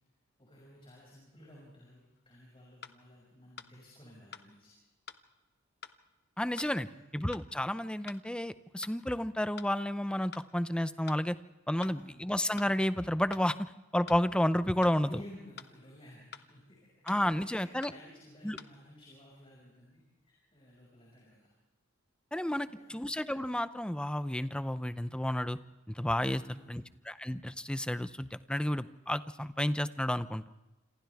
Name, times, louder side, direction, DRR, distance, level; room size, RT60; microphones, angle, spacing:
voice 1, 0.4-4.7 6.7-7.1 11.8-12.3 14.9-17.0 17.3-21.5 22.6-23.0 26.3-26.8, left 1 dB, 25° left, -3 dB, 6.1 m, -55 dB
sound 1, 2.2-2.3 2.8-3.0 3.6-3.7 4.3-4.5 5.1-5.2 5.8-6.0 6.6-6.7 7.3-7.5 8.1-8.2 8.8-9.0 9.6-9.7 10.3-10.5 11.1-11.2 11.8-12.0 12.6-12.7 13.3-13.5 14.1-14.2 14.8-15.0 15.6-15.7 16.3-16.5 17.1-17.2 17.8-18.0 18.6-18.7, left 7 dB, 50° left, 0.9 m, -47 dB
voice 2, 6.4-6.9 7.1-11.4 11.7-15.2 17.1-17.9 18.4-18.6 22.3-25.6 25.9-30.4, left 1 dB, 5° left, 13 dB, 0.6 m, -31 dB
27.5 x 27.0 x 3.5 m, 1.0 s
head